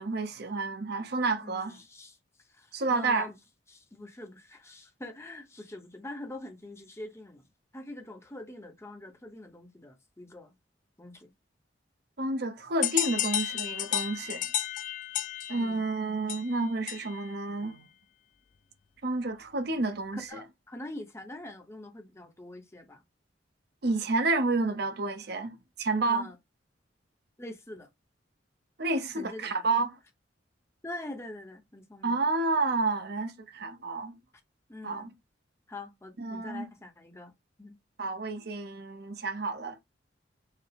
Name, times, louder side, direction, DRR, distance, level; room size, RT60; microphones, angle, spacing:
voice 1, 0.0-1.8 2.7-3.3 12.2-14.5 15.5-17.9 19.0-20.2 23.8-26.3 28.8-29.9 32.0-34.2 34.8-35.1 36.2-36.7 38.0-39.8, right 3 dB, 60° right, 0.7 m, -30 dB
voice 2, 1.4-3.4 3.7-7.5 7.7-10.5 11.0-11.3 15.5-15.8 20.1-23.0 26.0-26.4 27.4-27.9 29.1-29.6 30.8-32.2 34.7-35.1 35.7-37.3 37.6-37.8, left 1 dB, 15° left, 0.7 m, -44 dB
sound 1, 12.8-17.3, left 12 dB, 45° left, 0.3 m, -32 dB
4.6 x 2.0 x 3.3 m
head